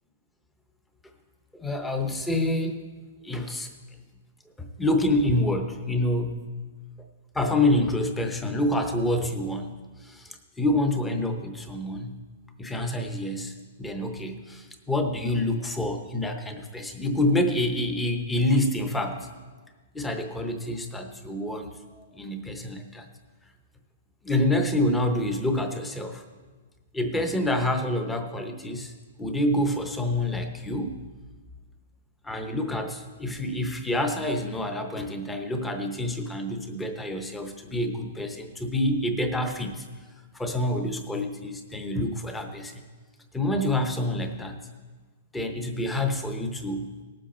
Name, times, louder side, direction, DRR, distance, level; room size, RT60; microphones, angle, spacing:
voice 1, 1.5-2.8 3.2-3.7 4.6-6.4 7.3-12.1 12.6-19.3 19.9-23.1 24.2-26.2 26.9-28.9 29.2-31.1 32.2-39.8 40.3-42.8 43.3-44.6 45.3-46.9, left 1 dB, 5° left, 5 dB, 0.7 m, -27 dB
18.5 x 7.6 x 4.3 m, 1.4 s
hypercardioid pair, 175°, 0 cm